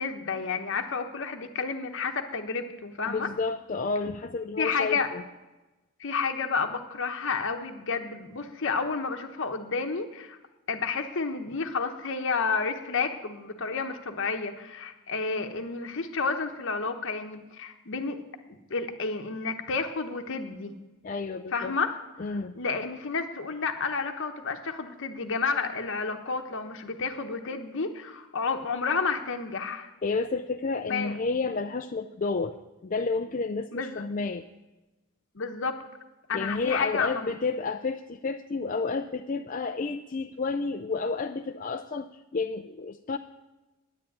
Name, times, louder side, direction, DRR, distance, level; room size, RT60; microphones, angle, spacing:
voice 1, 0.0-3.3 4.6-5.1 6.0-10.4 10.7-18.2 18.7-20.7 21.5-21.9 22.3-29.9 30.9-31.1 33.7-34.0 35.3-35.7 36.3-37.3, left 4 dB, 60° left, 5 dB, 1.0 m, -31 dB
voice 2, 3.1-5.2 21.0-21.8 22.2-22.6 30.0-32.6 32.8-34.5 36.3-43.2, left 4 dB, 40° left, 6 dB, 0.5 m, -30 dB
10.5 x 9.9 x 8.8 m, 1.1 s
head